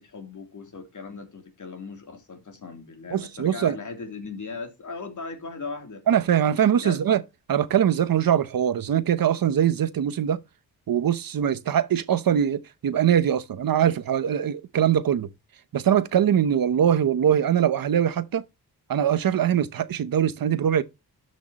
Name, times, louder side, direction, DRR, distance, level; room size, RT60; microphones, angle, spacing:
voice 1, 0.0-6.0 6.8-7.0, left 4 dB, 50° left, 3.2 m, -38 dB
voice 2, 3.1-3.8 6.1-7.2 7.5-10.4 10.9-15.3 15.7-18.4 18.9-20.8, right 9 dB, 65° right, 0.9 m, -22 dB
12.5 x 6.4 x 3.0 m
wide cardioid pair, 115°, 38 cm